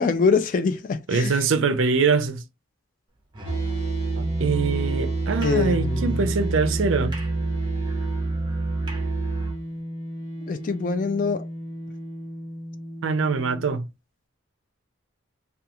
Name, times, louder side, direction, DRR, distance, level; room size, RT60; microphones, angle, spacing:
voice 1, 0.0-1.4 5.4-6.3 10.4-11.5, left 5 dB, 40° left, 0.3 m, -24 dB
voice 2, 1.1-2.4 4.2-7.2 13.0-13.9, right 4 dB, 70° right, 0.4 m, -23 dB
Musical instrument, 3.3-9.7, right 3 dB, 20° right, 0.6 m, -27 dB
sound 1, 3.4-13.8, right 1 dB, 60° left, 0.9 m, -35 dB
2.4 x 2.3 x 2.8 m
head